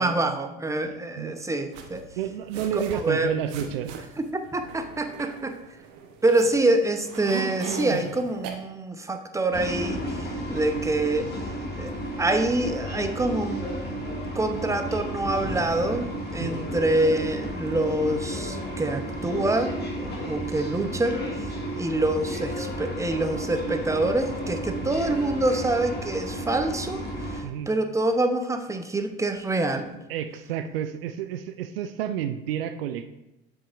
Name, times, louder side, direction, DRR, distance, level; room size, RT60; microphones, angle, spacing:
voice 1, 0.0-2.0 2.7-3.3 4.2-4.3 4.5-5.6 6.2-11.4 11.8-11.9 12.2-13.7 14.3-16.1 16.3-21.2 21.8-27.0 27.3-30.0, right 2 dB, 10° right, 7 dB, 0.8 m, -26 dB
sound 1, 1.7-8.5, right 6 dB, 55° right, 1.0 m, -38 dB
voice 2, 2.2-4.0 16.4-16.7 24.8-25.0 27.4-27.7 30.1-33.1, right 9 dB, 75° right, 10 dB, 0.5 m, -30 dB
sound 2, 9.5-27.4, equal, 35° left, 2.1 m, -33 dB
7.4 x 7.1 x 2.5 m, 0.91 s
figure-of-eight pair, 65°, 30 cm